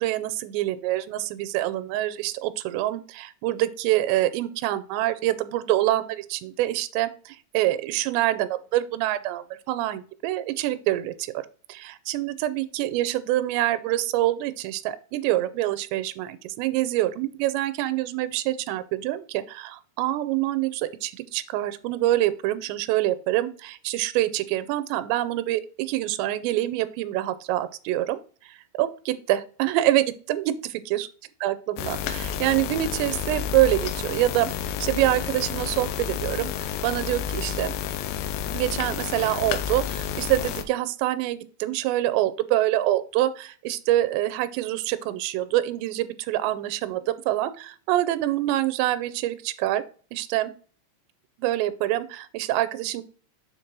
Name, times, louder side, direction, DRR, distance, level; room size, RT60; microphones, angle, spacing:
voice 1, 0.0-11.4 11.7-28.2 28.4-31.1 31.4-34.5 34.8-37.8 38.5-49.8 50.1-50.5 51.4-53.0, right 15 dB, 85° right, 13 dB, 2.8 m, -26 dB
sound 1, 31.8-40.6, left 9 dB, 85° left, 2.7 m, -30 dB
7.1 x 3.5 x 4.6 m, 0.41 s
omnidirectional pair, 4.9 m